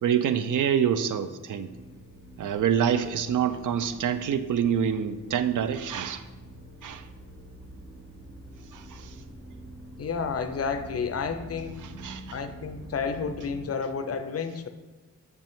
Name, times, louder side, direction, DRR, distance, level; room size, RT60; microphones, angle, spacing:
voice 1, 0.0-1.7 2.4-6.2 6.8-7.0 8.7-9.1 12.0-12.4, right 8 dB, 70° right, 11 dB, 0.4 m, -26 dB
sound 1, 1.7-13.6, right 1 dB, 40° right, 0.8 m, -46 dB
voice 2, 10.0-11.8 12.3-14.7, left 5 dB, 45° left, 9 dB, 0.5 m, -31 dB
6.3 x 5.2 x 3.5 m, 1.2 s
wide cardioid pair, 140°, 33 cm